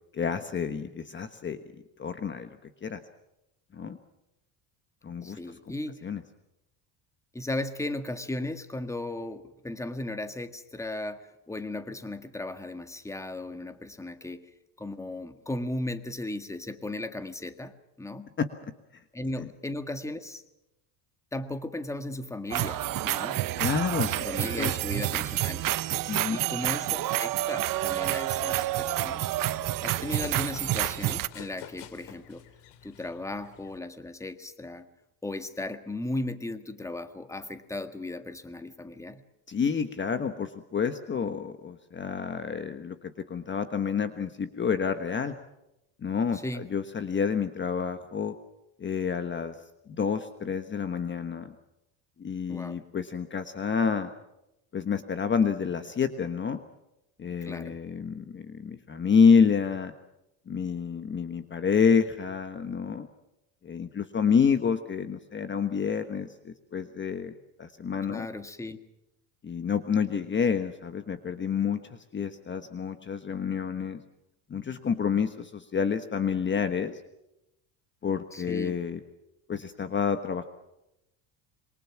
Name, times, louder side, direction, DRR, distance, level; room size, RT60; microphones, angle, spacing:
voice 1, 0.1-1.6 2.0-3.0 3.7-4.0 5.0-5.4 6.0-6.2 18.4-18.5 23.6-24.1 24.6-24.7 26.1-26.4 39.5-45.4 46.0-48.3 48.8-49.6 49.9-51.5 52.2-54.1 54.7-56.6 57.2-59.9 60.5-63.1 63.6-68.3 69.4-74.0 74.5-77.0 78.0-79.0 79.5-80.4, left 6 dB, 25° left, 9 dB, 1.3 m, -28 dB
voice 2, 5.2-6.0 7.3-14.5 14.8-18.3 19.1-20.4 21.3-23.4 24.0-25.7 26.3-29.3 29.8-32.4 32.8-34.9 35.2-39.2 46.3-46.7 52.5-52.8 57.4-57.8 68.1-68.8 78.3-78.8, left 2 dB, 5° left, 9 dB, 1.7 m, -36 dB
sound 1, 22.5-31.3, right 15 dB, 45° right, 1.0 m, -29 dB
Run, 27.8-33.8, left 9 dB, 65° left, 2.9 m, -49 dB
27.0 x 23.5 x 5.9 m, 0.88 s
cardioid pair, 140°, 45 cm